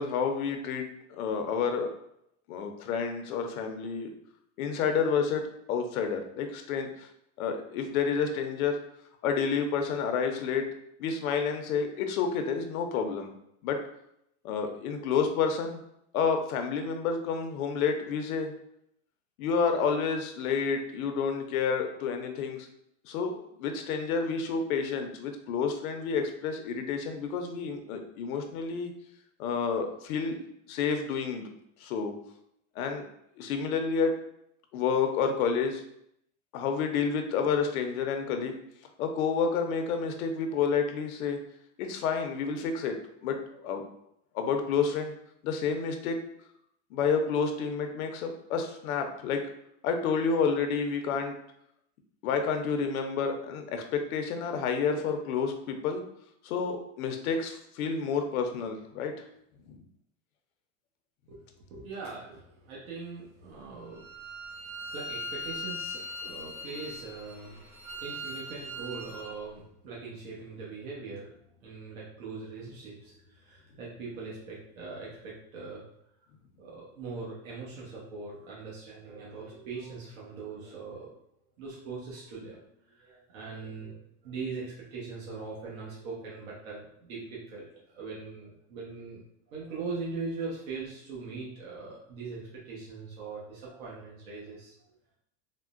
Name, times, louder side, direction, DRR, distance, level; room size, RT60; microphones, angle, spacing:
voice 1, 0.0-1.9 2.5-4.1 4.6-7.1 7.4-8.8 9.2-10.7 11.0-13.3 13.6-13.8 14.4-15.8 16.1-18.5 19.4-22.7 23.0-28.9 29.4-30.4 30.7-31.5 31.8-32.1 32.8-33.0 33.4-34.1 34.7-35.8 36.5-38.5 39.0-41.4 41.8-43.0 43.2-43.4 43.6-43.8 44.3-45.1 45.4-46.2 46.9-49.4 49.8-51.3 52.2-56.0 56.4-59.1 59.7-59.8, left 5 dB, 85° left, 5 dB, 0.7 m, -29 dB
voice 2, 61.3-64.1 64.8-71.3 71.6-75.8 76.6-81.1 81.6-87.7 87.9-89.2 89.5-94.7, right 4 dB, 75° right, -5 dB, 1.0 m, -41 dB
Bowed string instrument, 63.9-69.3, left 1 dB, 5° right, 0.6 m, -40 dB
3.6 x 2.1 x 2.4 m, 0.75 s
supercardioid pair, 165°, 41 cm